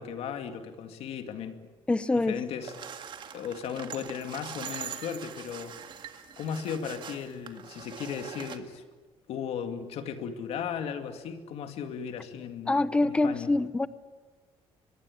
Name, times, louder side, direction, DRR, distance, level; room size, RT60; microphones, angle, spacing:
voice 1, 0.0-1.6 2.2-5.8 6.4-8.8 9.3-13.5, left 7 dB, 80° left, 7 dB, 2.3 m, -36 dB
voice 2, 1.9-2.3 12.7-13.9, left 2 dB, 10° left, 15 dB, 0.7 m, -25 dB
sound 1, 2.6-8.6, right 8 dB, 50° right, 1.9 m, -42 dB
24.5 x 22.0 x 8.6 m, 1.4 s
cardioid pair, 150°, 10 cm